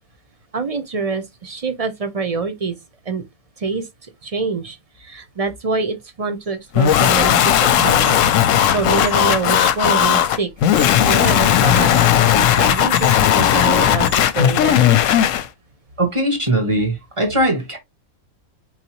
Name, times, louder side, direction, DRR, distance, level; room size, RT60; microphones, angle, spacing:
voice 1, 0.5-2.8 3.0-3.2 3.6-10.5 11.0-14.9, right 4 dB, 35° right, 0.6 m, -25 dB
sound 1, 6.4-6.5 6.8-14.2, right 1 dB, 55° right, 2.3 m, -41 dB
sound 2, 6.7-15.5, left 10 dB, 70° left, 0.9 m, -16 dB
voice 2, 16.0-17.8, right 1 dB, 20° right, 1.7 m, -20 dB
4.5 x 4.0 x 2.9 m
omnidirectional pair, 1.5 m